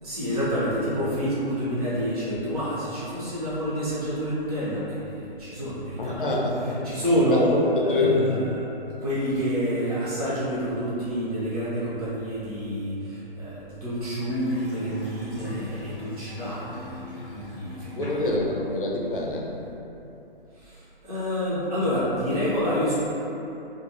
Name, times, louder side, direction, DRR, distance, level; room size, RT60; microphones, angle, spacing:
voice 1, 0.0-6.2 6.8-7.5 7.8-8.6 9.0-18.1 20.6-22.9, equal, 40° right, -10 dB, 0.9 m, -28 dB
voice 2, 6.0-6.7 7.3-7.4 7.9-8.4 18.0-19.5, left 3 dB, 60° left, -2 dB, 0.5 m, -25 dB
Water tap faucet / Sink (filling or washing) / Bathtub (filling or washing), 14.3-19.7, left 1 dB, ahead, 0.8 m, -43 dB
2.4 x 2.4 x 2.8 m, 2.9 s
figure-of-eight pair, 135°, 30 cm